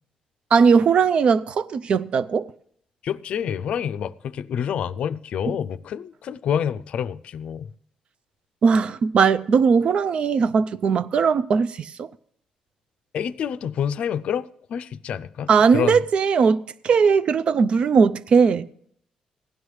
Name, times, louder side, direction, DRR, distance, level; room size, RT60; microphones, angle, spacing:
voice 1, 0.5-2.5 8.6-12.1 15.5-18.7, right 5 dB, 55° right, 0.4 m, -19 dB
voice 2, 3.0-7.7 13.1-16.0, left 8 dB, 65° left, 0.4 m, -28 dB
16.5 x 11.0 x 3.2 m
cardioid pair, 100°, 2 cm